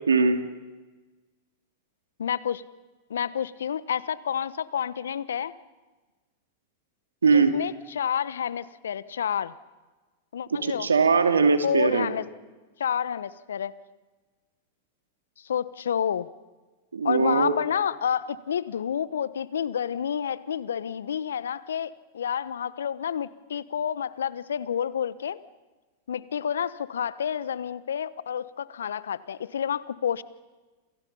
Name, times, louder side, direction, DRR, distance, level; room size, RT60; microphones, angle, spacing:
voice 1, 0.1-0.4 7.2-7.5 10.5-12.1 16.9-17.5, right 4 dB, 85° right, 7 dB, 2.6 m, -21 dB
voice 2, 2.2-2.6 3.1-5.5 7.3-9.5 10.3-10.9 11.6-12.2 12.8-13.7 15.4-16.3 17.0-25.4 26.1-30.2, left 8 dB, 75° left, 17 dB, 1.1 m, -29 dB
29.5 x 27.5 x 5.6 m, 1.2 s
hypercardioid pair, 100°, 0 cm